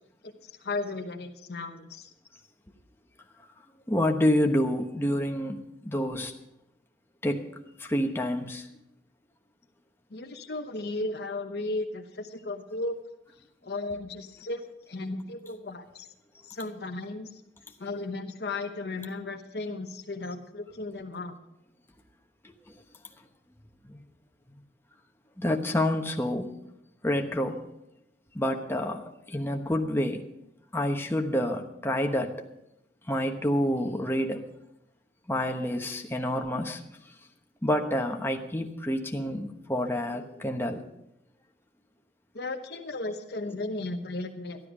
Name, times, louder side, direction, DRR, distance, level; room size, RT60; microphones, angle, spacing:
voice 1, 0.6-2.1 10.1-13.0 13.6-16.1 16.4-17.4 17.8-21.3 42.3-44.6, left 2 dB, 65° left, 5 dB, 0.9 m, -35 dB
voice 2, 3.9-6.3 7.2-7.5 7.8-8.7 22.4-22.5 23.8-24.0 25.4-26.5 27.0-27.6 28.3-30.3 30.7-32.4 33.1-34.4 35.3-36.8 37.6-40.8, left 1 dB, 15° left, 3 dB, 1.1 m, -28 dB
13.0 x 12.0 x 4.9 m, 0.82 s
head